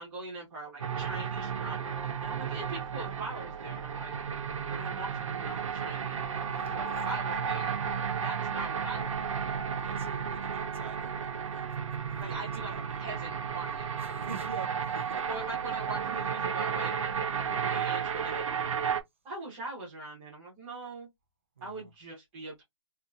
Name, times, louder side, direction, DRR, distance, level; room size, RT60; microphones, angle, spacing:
voice 1, 0.0-1.9 2.2-4.1 4.7-6.3 6.7-7.8 8.2-9.5 10.7-10.8 12.1-12.7 13.0-14.0 15.3-16.9 17.4-18.9 19.2-21.1 21.6-22.6, right 2 dB, 10° right, 0.9 m, -41 dB
sound 1, 0.8-19.0, right 7 dB, 85° right, 0.6 m, -33 dB
voice 2, 6.6-7.2 9.8-11.8 12.2-13.1 14.0-15.5 21.6-21.9, right 5 dB, 25° right, 0.4 m, -46 dB
2.6 x 2.6 x 2.3 m
hypercardioid pair, 180°, 16 cm